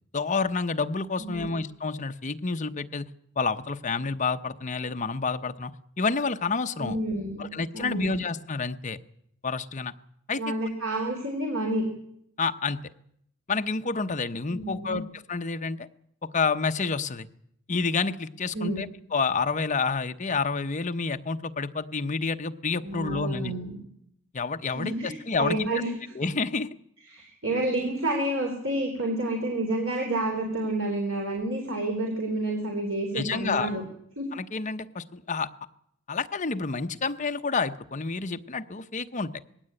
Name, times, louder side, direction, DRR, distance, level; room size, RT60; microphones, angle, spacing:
voice 1, 0.1-3.1 3.4-7.0 7.4-9.0 9.4-9.9 10.3-10.4 12.4-12.8 13.5-15.0 15.3-15.9 16.3-17.3 17.7-23.5 24.3-25.7 26.1-26.7 33.1-33.7 34.3-35.5 36.1-39.3, left 4 dB, 35° left, 8 dB, 0.8 m, -29 dB
voice 2, 6.8-7.5 7.7-8.1 10.4-11.9 14.5-15.0 18.5-18.8 22.8-23.8 24.8-26.1 27.1-33.8 34.2-34.3, right 1 dB, 65° right, 1 dB, 3.7 m, -29 dB
20.0 x 16.5 x 8.9 m, 0.74 s
head